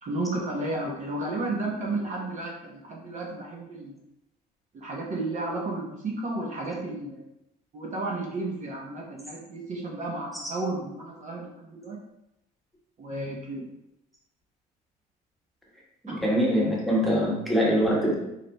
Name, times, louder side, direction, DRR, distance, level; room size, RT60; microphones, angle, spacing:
voice 1, 0.0-4.0 4.7-7.3 7.7-12.0 13.0-13.7 16.1-16.2, right 2 dB, 45° right, -2 dB, 1.0 m, -33 dB
voice 2, 16.1-18.2, equal, ahead, -5 dB, 1.2 m, -23 dB
4.7 x 4.1 x 2.3 m, 0.86 s
cardioid pair, 110°, 17 cm